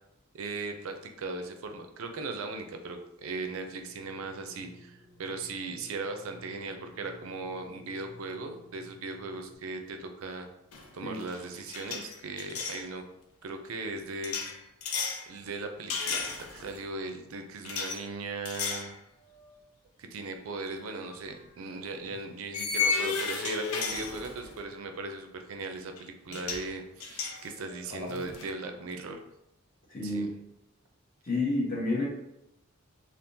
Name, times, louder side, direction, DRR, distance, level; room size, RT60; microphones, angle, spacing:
voice 1, 0.3-10.5 10.9-13.0 13.4-14.5 15.3-18.9 20.0-29.2 30.0-30.3, right 3 dB, 75° right, 5 dB, 0.4 m, -38 dB
sound 1, 3.6-9.6, equal, 10° right, 0.8 m, -54 dB
sound 2, 10.7-11.0 11.2-12.8 14.2-15.2 15.9-16.8 17.7-18.0 18.5-18.9 19.4-19.5 21.1-21.2 22.5-24.6 26.0-26.1 26.3-26.7 27.0-28.5, left 5 dB, 85° left, 0.5 m, -33 dB
voice 2, 29.9-30.3 31.2-32.0, left 2 dB, 40° left, -5 dB, 1.2 m, -29 dB
3.6 x 2.4 x 2.6 m, 0.84 s
head